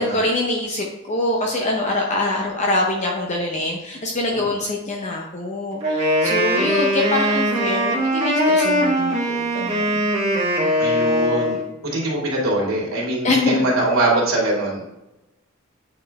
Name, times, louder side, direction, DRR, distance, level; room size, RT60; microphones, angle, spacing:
voice 1, 0.0-10.0 13.2-13.6, left 2 dB, 35° left, -1 dB, 0.8 m, -24 dB
Wind instrument woodwind instrument, 5.8-11.7, equal, 30° right, 1.9 m, -21 dB
voice 2, 10.8-11.6 11.9-14.8, right 1 dB, 80° right, -4 dB, 2.5 m, -22 dB
8.6 x 4.3 x 3.4 m, 0.94 s
head